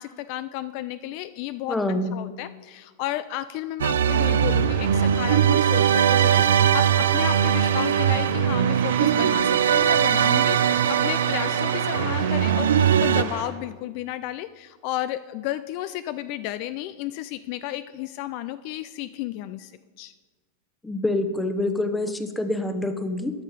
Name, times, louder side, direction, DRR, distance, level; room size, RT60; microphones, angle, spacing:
voice 1, 0.0-1.8 2.1-19.7 20.0-20.1, left 14 dB, 55° left, 13 dB, 0.3 m, -33 dB
voice 2, 1.7-2.1 20.8-23.3, left 2 dB, 10° left, 8 dB, 0.9 m, -26 dB
sound 1, 3.8-13.2, right 9 dB, 90° right, 0.4 m, -20 dB
sound 2, 4.1-13.4, right 5 dB, 75° right, 2.5 m, -35 dB
13.0 x 5.6 x 5.1 m, 1.3 s
hypercardioid pair, 120°, 0 cm